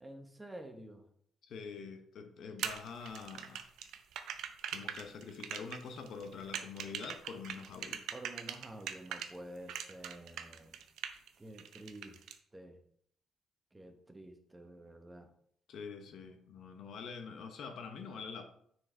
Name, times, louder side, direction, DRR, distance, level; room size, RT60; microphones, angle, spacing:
voice 1, 0.0-1.0 8.1-10.8 11.4-12.2 12.5-12.8 13.7-15.3, right 1 dB, 15° right, 5 dB, 1.1 m, -50 dB
voice 2, 1.4-3.6 4.7-8.1 15.7-18.5, left 5 dB, 70° left, 6 dB, 1.0 m, -45 dB
sound 1, 2.6-9.3 9.7-11.3 11.6-12.3, right 9 dB, 80° right, 0.6 m, -41 dB
6.4 x 4.6 x 4.5 m, 0.65 s
cardioid pair, 90°, 0 cm